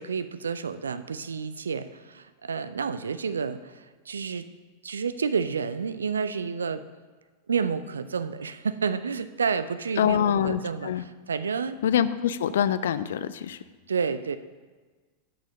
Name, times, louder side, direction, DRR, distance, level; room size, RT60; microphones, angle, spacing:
voice 1, 0.0-3.7 4.1-4.5 4.8-6.8 7.5-10.9 11.3-11.8 13.9-14.4, right 5 dB, 70° right, 13 dB, 0.4 m, -30 dB
voice 2, 10.0-11.0 11.8-13.6, left 9 dB, 60° left, 15 dB, 0.4 m, -25 dB
8.6 x 6.1 x 5.6 m, 1.4 s
figure-of-eight pair, 90°, 0 cm